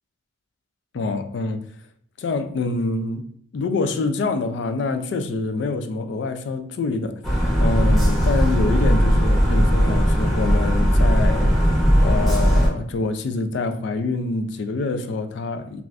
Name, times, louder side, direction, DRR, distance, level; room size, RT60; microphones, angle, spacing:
voice 1, 0.9-1.7 2.2-7.2 7.6-11.8 12.0-15.8, left 3 dB, 65° left, 0.3 m, -26 dB
sound 1, 7.2-12.7, equal, ahead, 0.6 m, -18 dB
2.4 x 2.4 x 3.2 m
head